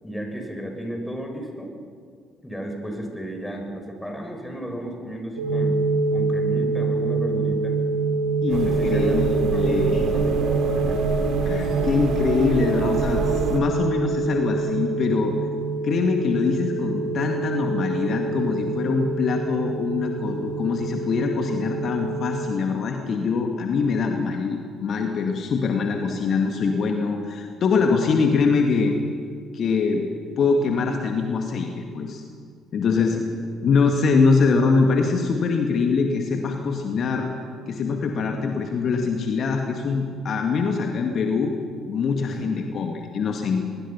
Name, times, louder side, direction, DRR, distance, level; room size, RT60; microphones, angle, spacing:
voice 1, 0.0-1.7 2.4-5.8 6.1-7.7 8.4-11.0 33.0-33.2 42.3-42.5, equal, 5° left, 2 dB, 6.7 m, -34 dB
sound 1, 5.4-22.5, right 3 dB, 80° right, 3.5 m, -26 dB
voice 2, 8.4-10.1 11.4-15.4 15.8-28.9 29.5-30.1 30.4-32.2 32.7-33.2 33.6-37.3 37.7-41.5 41.9-43.6, left 4 dB, 50° left, 3 dB, 2.0 m, -23 dB
sound 2, 8.5-13.6, right 5 dB, 60° right, 2.4 m, -26 dB
24.0 x 21.5 x 5.9 m, 2.1 s
figure-of-eight pair, 50°, 0 cm